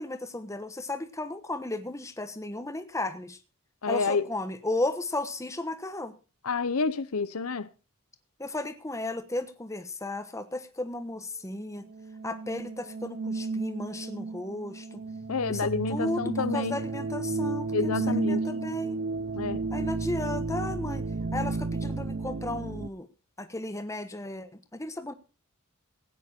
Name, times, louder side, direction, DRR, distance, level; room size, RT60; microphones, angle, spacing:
voice 1, 0.0-3.4 3.9-6.2 8.4-11.9 12.2-15.0 15.5-19.0 19.7-21.0 21.3-23.1 23.4-25.1, left 2 dB, 15° left, 1.1 m, -34 dB
voice 2, 3.8-4.2 6.4-7.7 15.3-16.8 17.7-18.4 19.4-19.6, left 4 dB, 80° left, 0.8 m, -29 dB
sound 1, 11.9-22.9, right 3 dB, 45° right, 0.6 m, -32 dB
16.0 x 9.4 x 4.4 m
head